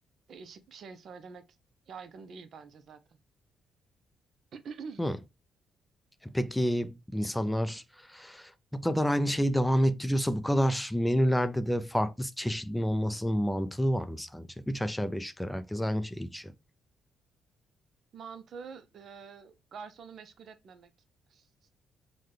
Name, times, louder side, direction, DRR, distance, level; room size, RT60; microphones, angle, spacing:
voice 1, 0.3-1.4 1.9-3.2 4.5-5.0 18.1-20.9 21.3-21.5, right 5 dB, 60° right, 0.5 m, -46 dB
voice 2, 6.2-16.5, equal, 5° left, 0.3 m, -29 dB
3.7 x 2.2 x 3.2 m
cardioid pair, 90°, 0 cm